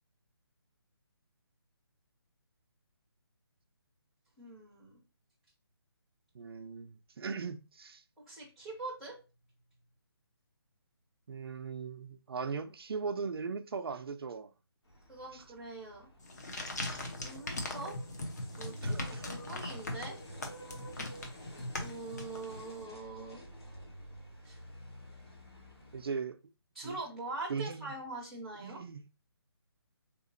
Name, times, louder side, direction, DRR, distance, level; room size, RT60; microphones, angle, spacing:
voice 1, 4.4-5.0 8.3-9.1 15.1-16.1 16.6-16.8 17.2-18.0 18.6-20.2 21.8-23.4 24.4-24.6 26.7-28.8, right 2 dB, ahead, 0.6 m, -43 dB
voice 2, 6.3-8.0 11.3-14.5 15.3-15.4 18.8-19.3 25.9-26.4 26.8-27.0 27.5-27.9 28.6-29.0, right 5 dB, 65° right, 0.4 m, -39 dB
sound 1, 14.8-26.0, equal, 75° left, 1.8 m, -50 dB
sound 2, 16.2-22.8, left 2 dB, 40° left, 0.7 m, -40 dB
3.7 x 2.8 x 2.5 m
hypercardioid pair, 170°, 14 cm